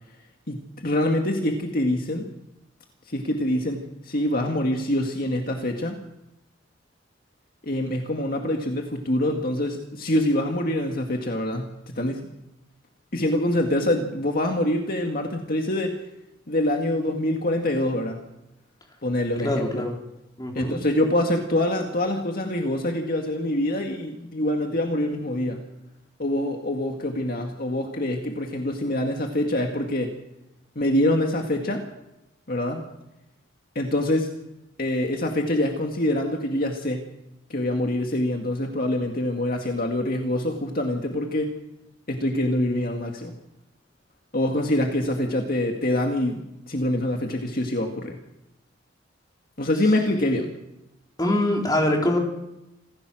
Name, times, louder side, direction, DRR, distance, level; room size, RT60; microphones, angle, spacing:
voice 1, 0.5-2.3 3.1-6.0 7.6-12.2 13.1-16.0 16.5-18.2 19.0-19.8 20.5-25.6 26.2-30.1 30.8-31.8 32.5-32.9 33.8-34.3 34.8-37.1 37.5-41.5 42.1-43.3 44.3-48.2 49.6-50.5, left 1 dB, 50° left, 2 dB, 2.1 m, -25 dB
voice 2, 19.4-20.0 20.4-20.8 51.2-52.2, left 1 dB, 20° left, 0 dB, 3.9 m, -23 dB
27.0 x 15.5 x 6.4 m, 0.90 s
head